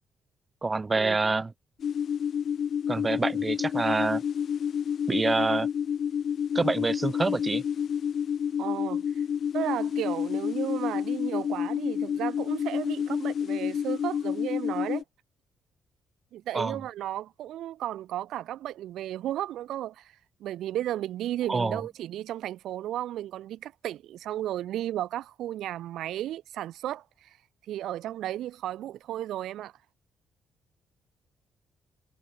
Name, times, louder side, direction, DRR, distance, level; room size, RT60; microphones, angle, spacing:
voice 1, 0.6-1.5 2.9-4.2 5.1-5.7 6.5-7.6 16.5-16.8 21.5-21.8, right 3 dB, 25° right, 1.8 m, -26 dB
sound 1, 1.8-15.0, left 8 dB, 60° left, 0.7 m, -29 dB
voice 2, 8.6-9.2 9.5-15.0 16.3-27.4 27.7-29.7, right 12 dB, 80° right, 0.8 m, -34 dB
cardioid pair, 80°, 0 cm